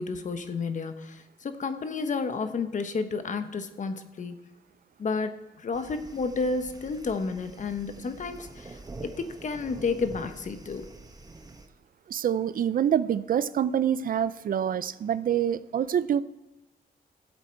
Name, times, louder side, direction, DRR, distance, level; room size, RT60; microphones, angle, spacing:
voice 1, 0.0-4.4 5.0-10.9, left 4 dB, 50° left, 9 dB, 1.1 m, -31 dB
sound 1, 5.7-11.7, right 3 dB, 25° right, 1.1 m, -46 dB
voice 2, 12.1-16.2, right 9 dB, 60° right, 16 dB, 0.5 m, -26 dB
15.0 x 8.0 x 4.5 m, 1.0 s
cardioid pair, 90°, 17 cm